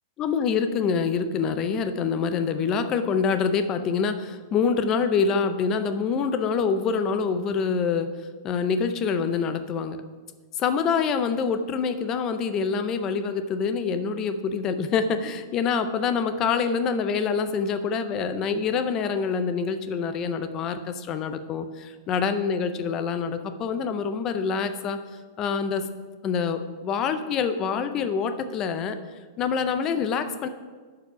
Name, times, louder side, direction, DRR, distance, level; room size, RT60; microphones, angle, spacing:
voice 1, 0.2-10.0 10.6-25.0 25.4-25.8 26.2-29.0 29.4-30.5, left 5 dB, 20° left, 9 dB, 0.4 m, -26 dB
11.5 x 4.8 x 5.6 m, 1.5 s
supercardioid pair, 180°, 2 cm